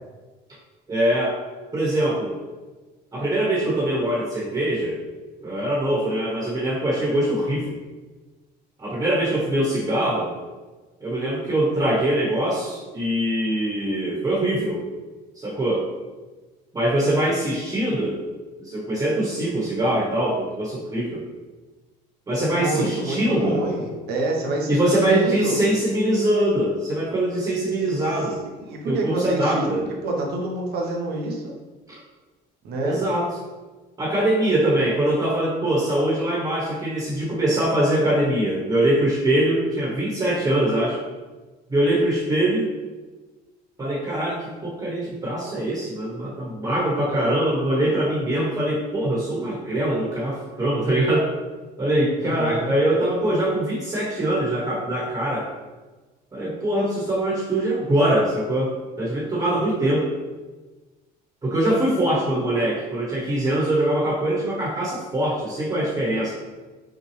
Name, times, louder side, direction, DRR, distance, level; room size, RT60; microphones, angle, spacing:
voice 1, 0.9-1.4 1.7-2.4 3.1-5.0 5.4-7.8 8.8-10.3 11.0-14.8 15.4-15.9 16.7-18.2 18.6-21.2 22.3-23.6 24.7-28.4 28.9-29.8 32.8-33.3 34.0-41.0 41.7-42.7 43.8-51.3 51.8-55.5 56.3-60.1 61.4-66.3, right 1 dB, 25° right, -5 dB, 1.1 m, -23 dB
voice 2, 22.5-25.6 28.6-29.7 30.0-31.5 32.6-33.0 52.3-52.7, right 2 dB, 70° right, 0 dB, 0.9 m, -27 dB
5.7 x 2.2 x 3.2 m, 1.3 s
cardioid pair, 110°, 17 cm